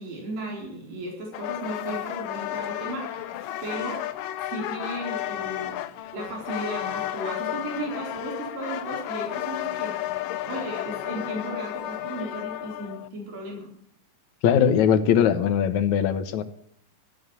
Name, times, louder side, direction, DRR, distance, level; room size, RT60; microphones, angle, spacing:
voice 1, 0.0-3.3 3.6-4.1 4.5-5.8 6.1-10.0 10.4-13.7, right 1 dB, 90° right, -1 dB, 6.0 m, -35 dB
sound 1, 1.3-13.1, left 13 dB, 90° left, 2.4 m, -32 dB
voice 2, 14.4-16.4, left 8 dB, 65° left, 9 dB, 2.4 m, -20 dB
14.5 x 9.8 x 8.8 m, 0.66 s
omnidirectional pair, 3.8 m